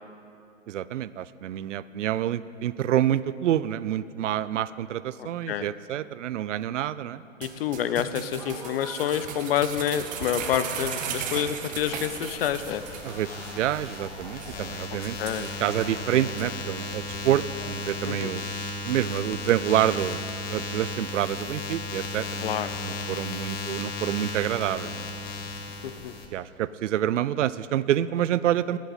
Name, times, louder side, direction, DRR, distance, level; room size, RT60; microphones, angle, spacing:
voice 1, 0.7-7.2 13.0-18.4 18.8-20.2 20.5-22.5 22.8-25.1 26.3-28.8, right 11 dB, 65° right, 16 dB, 0.5 m, -27 dB
voice 2, 5.2-5.7 7.4-12.8 14.9-15.5 18.1-18.3 22.4-22.7 25.8-26.1, left 10 dB, 50° left, 12 dB, 0.6 m, -28 dB
sound 1, 7.4-13.2 13.4-13.5 13.9-14.0 14.4-14.6 15.0-15.9 16.4-16.5, right 8 dB, 20° right, 0.8 m, -36 dB
Applause / Crowd, 7.5-18.4, right 1 dB, ahead, 0.3 m, -45 dB
sound 2, 11.7-26.3, left 2 dB, 20° left, 1.1 m, -35 dB
20.5 x 8.4 x 4.1 m, 2.6 s
hypercardioid pair, 130°, 39 cm